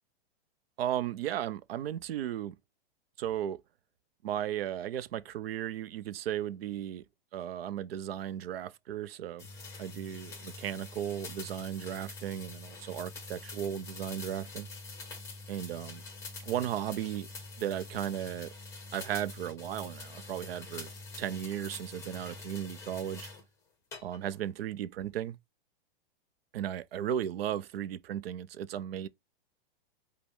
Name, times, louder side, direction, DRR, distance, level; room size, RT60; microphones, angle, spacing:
voice 1, 0.8-2.6 3.2-3.6 4.2-7.0 7.3-9.5 9.8-14.7 15.5-16.0 16.4-17.3 17.6-18.5 18.9-20.9 21.2-23.3 24.0-25.4 26.5-29.1, right 11 dB, 70° right, 0.6 m, -35 dB
sound 1, 9.4-23.4 23.9-24.5, left 3 dB, 10° left, 0.8 m, -45 dB
5.2 x 2.2 x 4.5 m
hypercardioid pair, 165°, 30 cm